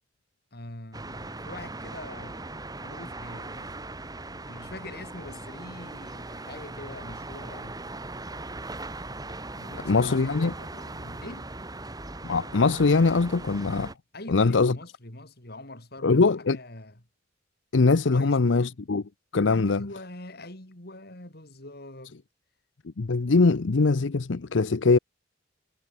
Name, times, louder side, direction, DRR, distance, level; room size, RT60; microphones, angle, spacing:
voice 1, 0.5-3.8 4.5-7.8 9.5-11.5 14.1-17.0 18.1-18.7 19.5-22.2, left 2 dB, 55° left, 4.4 m, -43 dB
sound 1, 0.9-13.9, right 2 dB, 20° right, 1.9 m, -39 dB
voice 2, 9.8-10.5 12.2-13.9 14.3-14.8 16.0-16.6 17.7-19.0 19.3-19.8 23.0-25.0, left 3 dB, 75° left, 0.7 m, -22 dB
head